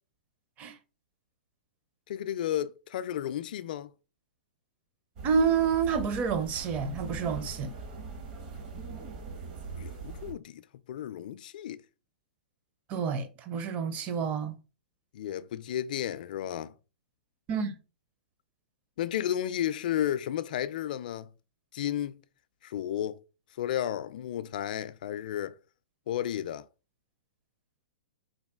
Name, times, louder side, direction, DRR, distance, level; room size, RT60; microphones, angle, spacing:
voice 1, 2.1-3.9 9.8-11.8 15.1-16.7 19.0-21.3 21.7-22.2 22.6-23.2 23.6-25.6 26.1-26.7, left 11 dB, 60° left, 0.4 m, -33 dB
voice 2, 5.2-7.7 12.9-14.6 17.5-17.7, right 6 dB, 30° right, 0.6 m, -28 dB
sound 1, 5.2-10.3, right 4 dB, 50° right, 1.1 m, -41 dB
3.9 x 2.4 x 3.5 m
hypercardioid pair, 135°, 5 cm